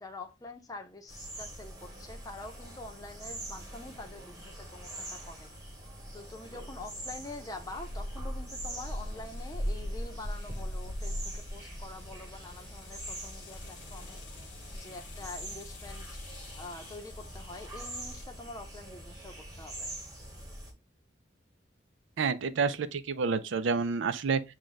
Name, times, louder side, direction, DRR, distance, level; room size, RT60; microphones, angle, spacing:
voice 1, 0.0-5.5 6.1-14.2 14.7-16.1 16.6-19.9, left 2 dB, 20° left, 0.6 m, -46 dB
sound 1, 1.1-20.7, right 1 dB, 20° right, 1.2 m, -44 dB
sound 2, 7.7-18.2, left 1 dB, 70° left, 0.7 m, -41 dB
voice 2, 22.2-24.4, right 5 dB, 85° right, 0.4 m, -29 dB
6.1 x 2.2 x 3.8 m
head